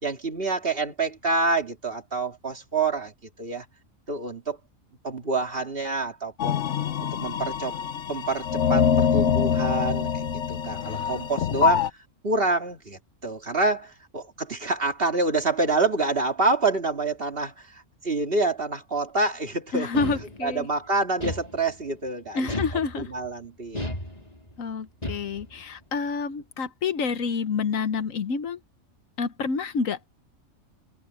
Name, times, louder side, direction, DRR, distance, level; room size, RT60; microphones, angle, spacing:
voice 1, 0.0-3.1 3.4-3.7 4.1-4.6 5.0-6.6 7.0-7.8 8.1-11.9 12.2-19.9 20.4-22.5 23.0-23.9, right 3 dB, 45° right, 2.6 m, -27 dB
sound 1, 6.4-11.9, left 7 dB, 65° left, 1.2 m, -24 dB
voice 2, 19.7-20.7 22.3-23.1 24.6-28.6 29.2-30.0, left 5 dB, 85° left, 1.5 m, -28 dB
sound 2, 19.9-20.7 21.2-22.0 22.5-23.3 23.7-24.6 25.0-25.6, left 1 dB, 30° left, 4.4 m, -33 dB
omnidirectional pair, 1.3 m